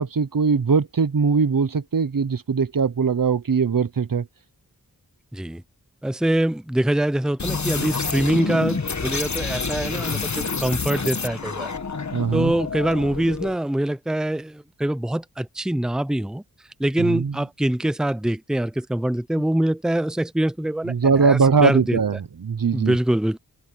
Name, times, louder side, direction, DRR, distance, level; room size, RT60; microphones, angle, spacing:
voice 1, 0.0-4.3 12.1-12.5 17.0-17.3 20.9-23.0, right 5 dB, 65° right, 0.9 m, -21 dB
voice 2, 5.3-5.6 6.0-11.7 12.3-16.4 16.8-22.0 22.7-23.4, right 1 dB, ahead, 0.7 m, -24 dB
sound 1, 7.4-13.6, left 4 dB, 50° left, 1.4 m, -28 dB
wide cardioid pair, 75°, 36 cm